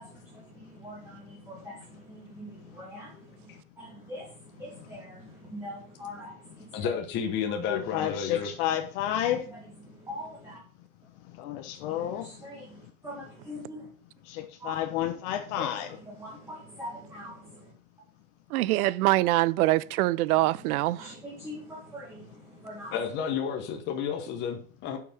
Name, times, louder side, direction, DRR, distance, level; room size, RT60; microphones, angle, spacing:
voice 1, 0.0-6.9 9.2-9.6 9.9-10.6 11.9-13.9 14.6-14.7 15.5-17.7 20.4-20.5 21.0-22.9, left 1 dB, 5° right, 1.9 m, -43 dB
voice 2, 6.7-8.5 22.9-25.0, left 7 dB, 25° left, 1.0 m, -31 dB
voice 3, 7.7-9.4 11.4-12.3 14.3-15.9, left 11 dB, 50° left, 1.0 m, -30 dB
voice 4, 18.5-21.1, right 17 dB, 80° right, 0.6 m, -24 dB
8.3 x 5.9 x 5.8 m
supercardioid pair, 170°, 44 cm